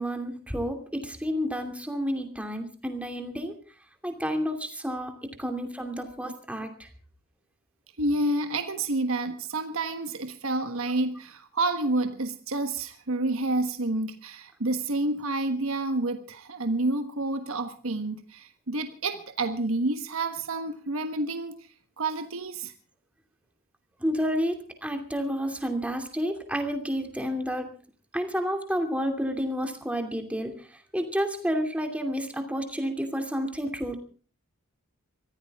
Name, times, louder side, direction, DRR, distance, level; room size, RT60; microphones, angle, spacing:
voice 1, 0.0-3.6 4.0-5.1 5.4-6.7 24.0-27.7 28.1-30.5 30.9-34.0, equal, 5° right, 5 dB, 2.6 m, -30 dB
voice 2, 8.0-21.5 22.0-22.7, right 2 dB, 65° right, 8 dB, 1.4 m, -29 dB
24.0 x 15.5 x 3.6 m, 0.38 s
head